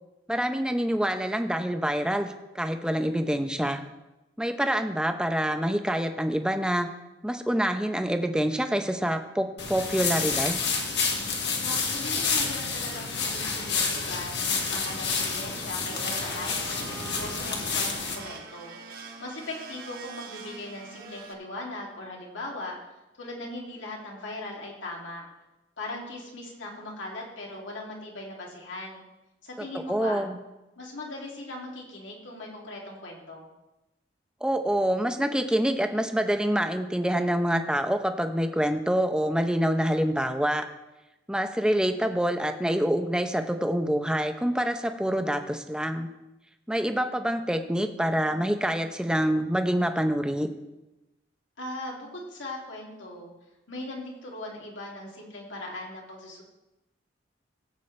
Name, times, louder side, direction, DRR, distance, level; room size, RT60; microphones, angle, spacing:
voice 1, 0.3-3.8 4.4-6.9 7.2-10.6 29.9-30.4 34.4-40.6 41.3-46.1 46.7-50.5, equal, 5° right, 6 dB, 0.6 m, -26 dB
sound 1, 9.6-18.2, left 5 dB, 65° left, 1.9 m, -29 dB
voice 2, 11.6-16.8 17.2-18.8 19.2-22.8 23.1-25.2 25.8-29.0 29.4-30.2 30.8-33.5 51.6-53.3 53.7-56.4, left 2 dB, 85° left, -2 dB, 2.5 m, -39 dB
Domestic sounds home sounds, 15.7-21.3, right 3 dB, 55° right, 1.2 m, -43 dB
17.0 x 8.3 x 3.2 m, 0.99 s
head